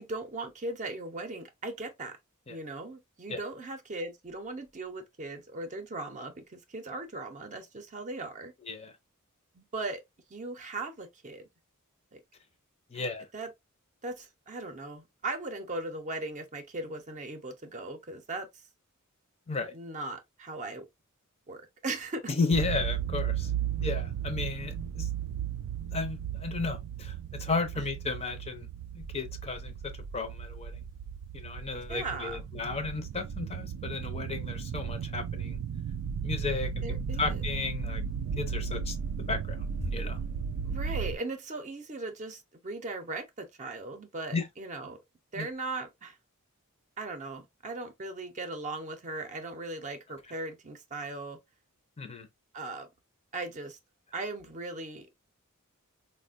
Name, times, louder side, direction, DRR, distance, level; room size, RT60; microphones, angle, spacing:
voice 1, 0.0-2.2 2.5-8.5 9.5-10.0 10.3-11.5 12.1-12.2 12.9-13.5 14.0-18.5 19.7-20.9 21.5-22.3 27.8-27.9 31.9-32.4 36.8-37.4 40.6-45.0 45.3-46.2 47.0-51.4 52.5-52.9 53.3-53.8 54.1-55.1, right 2 dB, 35° right, 0.6 m, -38 dB
voice 2, 12.9-13.3 19.5-19.7 22.3-23.5 23.8-25.1 25.9-28.7 28.9-30.8 31.3-35.6 36.2-36.8 37.2-38.0 38.4-39.0 39.3-40.2 44.3-44.5 45.4-45.5 52.0-52.3, left 4 dB, 30° left, 0.5 m, -34 dB
sound 1, 22.5-41.2, right 7 dB, 85° right, 0.3 m, -35 dB
4.1 x 2.1 x 2.4 m
head